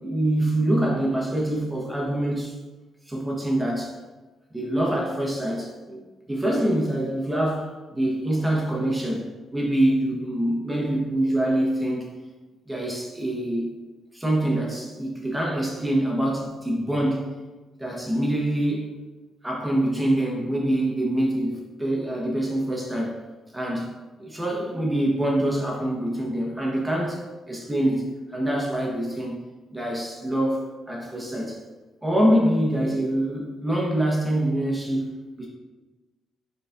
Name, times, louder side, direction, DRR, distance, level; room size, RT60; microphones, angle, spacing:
voice 1, 0.0-2.5 3.1-4.0 4.5-6.0 6.3-12.1 12.7-13.7 14.1-17.2 17.8-18.9 19.4-23.2 23.5-23.9 24.2-27.2 27.5-28.0 28.3-29.4 29.7-31.6 32.0-35.1 35.4-35.5, right 1 dB, 10° right, -3 dB, 1.2 m, -25 dB
4.8 x 4.0 x 2.6 m, 1.2 s
cardioid pair, 90°, 0 cm